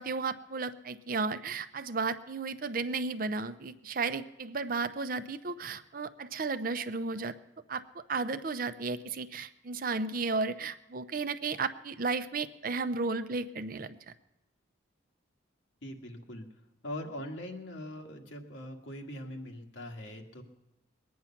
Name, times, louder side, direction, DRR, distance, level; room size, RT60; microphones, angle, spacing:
voice 1, 0.0-7.3 7.7-14.0, right 4 dB, 45° right, 11 dB, 0.6 m, -34 dB
voice 2, 15.8-16.5 16.8-20.4, left 1 dB, 80° left, 2 dB, 1.8 m, -42 dB
21.5 x 9.4 x 5.8 m, 0.94 s
head